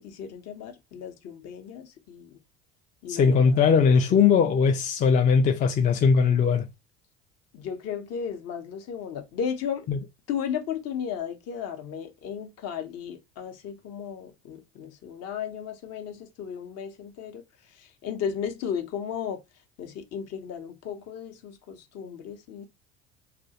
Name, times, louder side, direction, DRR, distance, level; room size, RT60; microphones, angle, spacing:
voice 1, 0.0-2.4 3.0-4.5 7.5-9.9 10.3-17.4 17.7-19.4 19.8-22.7, left 7 dB, 45° left, 0.7 m, -35 dB
voice 2, 3.1-6.7 9.9-10.0, left 6 dB, 25° left, 0.3 m, -20 dB
2.4 x 2.1 x 2.8 m
hypercardioid pair, 65°, 35 cm